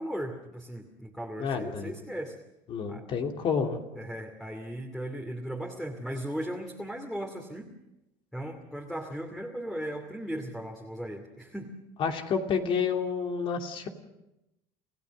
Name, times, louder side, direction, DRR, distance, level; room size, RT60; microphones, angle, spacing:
voice 1, 0.0-2.3 2.9-3.1 4.0-7.7 8.3-11.7, equal, ahead, 2 dB, 2.6 m, -37 dB
voice 2, 1.4-2.0 2.7-3.8 12.0-13.9, left 6 dB, 50° left, 3 dB, 2.8 m, -29 dB
27.5 x 15.5 x 6.4 m, 0.90 s
supercardioid pair, 105°, 11 cm